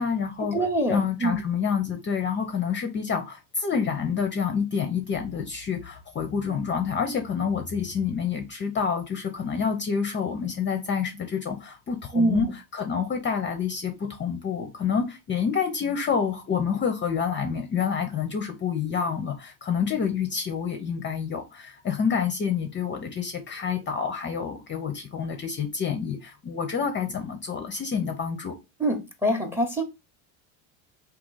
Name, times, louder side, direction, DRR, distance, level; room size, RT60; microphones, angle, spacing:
voice 1, 0.0-0.6 0.9-28.5, left 6 dB, 25° left, 0.6 m, -28 dB
voice 2, 0.5-1.4 12.1-12.5 28.8-29.8, right 1 dB, 5° right, 0.8 m, -25 dB
3.7 x 2.8 x 3.9 m
supercardioid pair, 125°, 43 cm